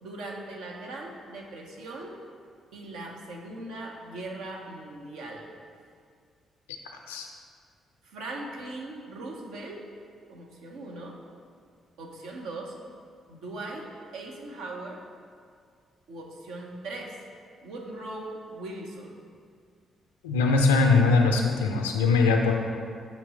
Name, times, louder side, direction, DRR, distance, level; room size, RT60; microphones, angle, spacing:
voice 1, 0.0-2.2 2.7-5.5 8.0-9.8 10.3-11.2 12.0-12.8 13.3-13.9 14.1-15.0 16.1-17.2 17.6-19.2, right 2 dB, 70° right, 0 dB, 0.7 m, -39 dB
voice 2, 20.2-22.5, left 4 dB, 85° left, 2 dB, 0.4 m, -21 dB
6.6 x 3.1 x 4.8 m, 2.1 s
hypercardioid pair, 40°, 0 cm